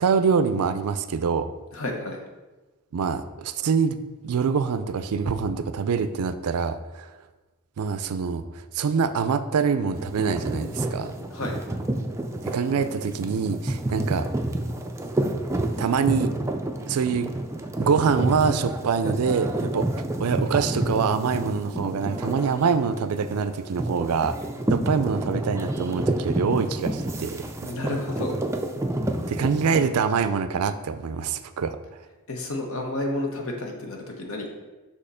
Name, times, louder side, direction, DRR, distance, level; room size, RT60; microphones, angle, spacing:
voice 1, 0.0-1.5 2.9-4.0 4.2-7.1 7.8-8.4 8.7-11.1 12.4-14.3 15.8-16.3 16.9-17.3 17.8-19.9 20.2-24.3 24.7-27.4 29.3-31.8, right 6 dB, 85° right, 12 dB, 0.4 m, -25 dB
voice 2, 1.7-2.2 11.3-11.6 27.6-28.4 32.3-34.5, left 1 dB, 65° left, 2 dB, 1.0 m, -30 dB
sound 1, 9.9-29.9, right 1 dB, 15° right, 0.3 m, -29 dB
6.4 x 2.9 x 5.5 m, 1.2 s
head